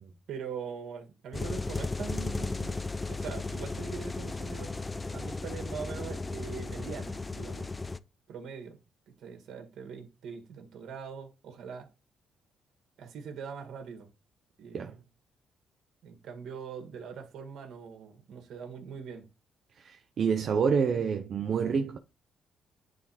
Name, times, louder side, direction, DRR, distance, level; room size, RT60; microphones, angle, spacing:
voice 1, 0.3-2.8 3.1-4.8 5.1-7.7 8.3-8.8 9.2-11.9 13.0-14.1 14.6-15.0 16.0-19.3, right 6 dB, 70° right, 1.9 m, -42 dB
sound 1, 1.3-8.0, left 3 dB, 20° left, 0.5 m, -35 dB
voice 2, 19.8-22.0, right 6 dB, 55° right, 0.8 m, -28 dB
9.6 x 3.6 x 4.3 m
cardioid pair, 90°, 0 cm